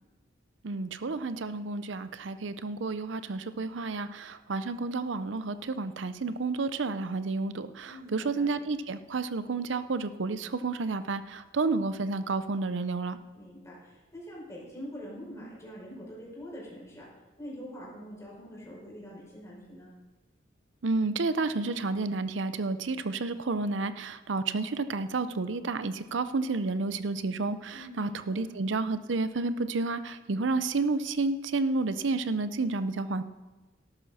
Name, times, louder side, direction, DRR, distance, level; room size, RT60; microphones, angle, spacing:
voice 1, 0.6-13.2 20.8-33.2, right 3 dB, 70° right, 12 dB, 0.6 m, -30 dB
voice 2, 7.8-8.5 13.3-17.1 17.4-20.0 27.7-28.4, equal, 15° left, -5 dB, 5.2 m, -44 dB
13.0 x 12.0 x 4.2 m, 1.2 s
head